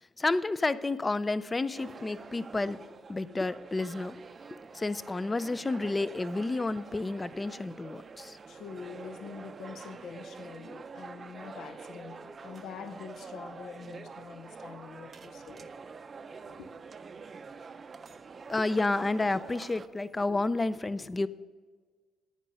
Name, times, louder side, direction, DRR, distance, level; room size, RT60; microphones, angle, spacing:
voice 1, 0.2-4.2 4.5-8.4 18.5-21.3, left 2 dB, 20° left, 0.4 m, -30 dB
sound 1, 1.7-19.9, right 5 dB, 40° right, 0.5 m, -46 dB
voice 2, 8.5-15.7 16.4-16.7, left 6 dB, 70° left, 0.7 m, -45 dB
10.5 x 8.6 x 5.3 m
cardioid pair, 90°, 0 cm